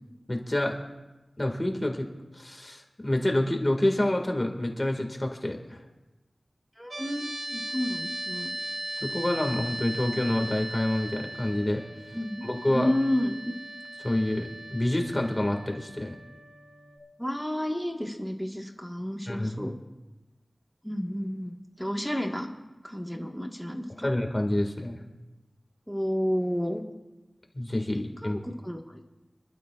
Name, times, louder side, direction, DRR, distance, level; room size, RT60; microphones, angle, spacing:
voice 1, 0.3-0.7 1.4-2.1 2.3-5.8 9.0-11.8 12.4-12.9 14.0-16.2 19.3-19.7 24.0-25.0 27.5-28.4, left 1 dB, 25° left, 2 dB, 2.0 m, -27 dB
voice 2, 6.8-8.5 12.1-12.4 12.7-13.5 17.2-19.7 20.8-22.5 22.8-24.1 25.9-26.8 28.2-29.0, equal, ahead, 2 dB, 1.6 m, -31 dB
sound 1, 6.9-17.0, right 1 dB, 45° right, 1.5 m, -38 dB
27.0 x 12.0 x 2.5 m, 1.1 s
wide cardioid pair, 80°, 0 cm